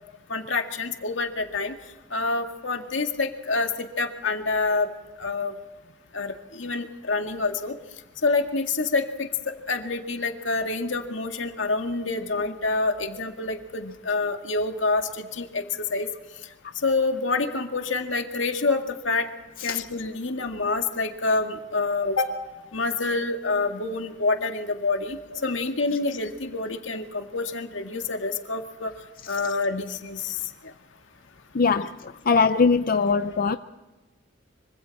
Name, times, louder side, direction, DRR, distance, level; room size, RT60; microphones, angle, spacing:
voice 1, 0.3-1.7 2.1-4.9 5.2-5.5 6.1-7.7 8.2-16.1 16.8-19.3 19.6-22.3 22.7-28.9 29.3-30.4, left 3 dB, 85° left, 2.1 m, -27 dB
voice 2, 31.5-33.6, left 5 dB, 50° left, 0.6 m, -21 dB
25.0 x 25.0 x 4.2 m
head